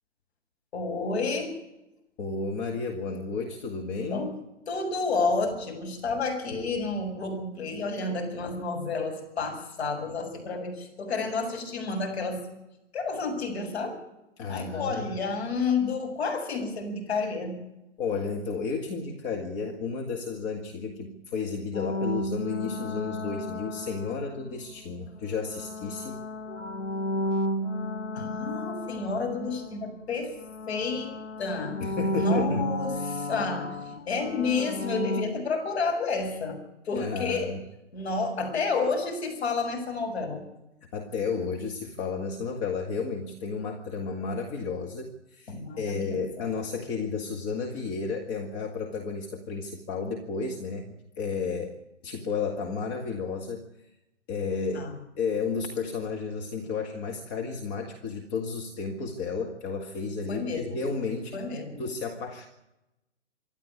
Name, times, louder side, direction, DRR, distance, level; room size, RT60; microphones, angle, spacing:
voice 1, 0.7-1.5 4.1-4.3 4.7-12.4 12.9-14.0 14.5-17.6 28.1-30.3 30.7-31.8 32.1-36.6 36.8-37.5 37.9-40.5 45.5-46.4 54.7-54.9 60.3-60.8 61.3-61.8, left 4 dB, 60° left, 3 dB, 7.4 m, -30 dB
voice 2, 2.2-4.3 14.4-15.2 18.0-26.2 31.8-32.7 37.0-37.6 40.9-51.8 52.0-53.7 54.3-54.8 55.2-61.4 61.8-62.5, left 4 dB, 30° left, 2 dB, 2.1 m, -32 dB
sound 1, 21.7-24.6 25.3-30.1 30.4-35.2, left 1 dB, 80° left, 1.7 m, -33 dB
26.5 x 11.5 x 9.7 m, 0.91 s
figure-of-eight pair, 130°, 36 cm